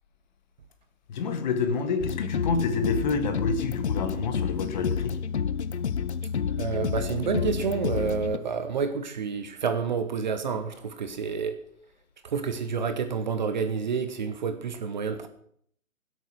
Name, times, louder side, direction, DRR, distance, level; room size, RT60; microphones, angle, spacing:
voice 1, 1.1-5.2, left 4 dB, 30° left, 7 dB, 1.8 m, -28 dB
sound 1, 2.0-8.4, left 7 dB, 55° left, 0.8 m, -30 dB
voice 2, 6.6-11.6 12.2-15.3, right 6 dB, 35° right, 9 dB, 1.0 m, -29 dB
16.5 x 8.2 x 6.1 m, 0.65 s
figure-of-eight pair, 145°, 42 cm